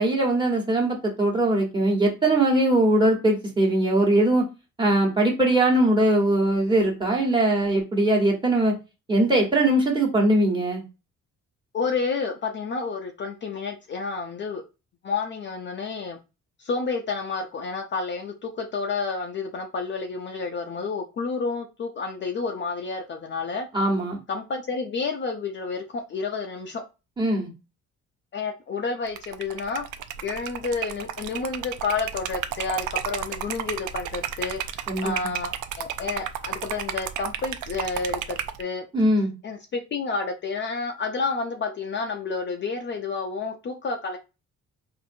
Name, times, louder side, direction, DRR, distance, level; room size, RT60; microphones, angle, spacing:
voice 1, 0.0-4.5 4.8-8.7 9.1-10.8 23.7-24.2 27.2-27.5 34.9-35.3 38.9-39.3, right 1 dB, 15° right, 1.1 m, -21 dB
voice 2, 11.7-14.6 15.0-16.2 16.6-23.7 24.3-26.8 28.3-29.9 30.2-38.8 39.4-44.2, left 4 dB, 40° left, 0.4 m, -30 dB
Liquid, 29.1-38.6, right 9 dB, 80° right, 0.5 m, -33 dB
4.2 x 2.5 x 2.6 m
cardioid pair, 140°, 30 cm